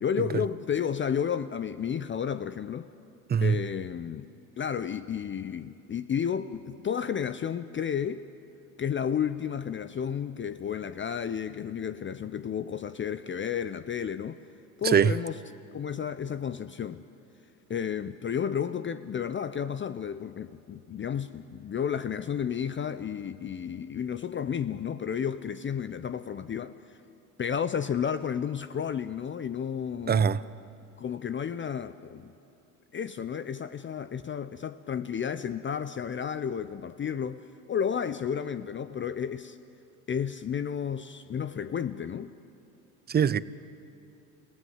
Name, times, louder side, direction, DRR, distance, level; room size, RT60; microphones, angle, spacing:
voice 1, 0.0-2.9 3.4-4.3 4.6-8.2 8.8-14.4 14.8-15.4 15.7-17.0 17.7-26.7 27.4-30.3 31.0-32.3 32.9-39.6 40.1-42.3, left 8 dB, 25° left, 0.6 m, -32 dB
voice 2, 30.1-30.4 43.1-43.4, right 7 dB, 20° right, 0.6 m, -22 dB
28.0 x 17.0 x 8.0 m
supercardioid pair, 85°, 44 cm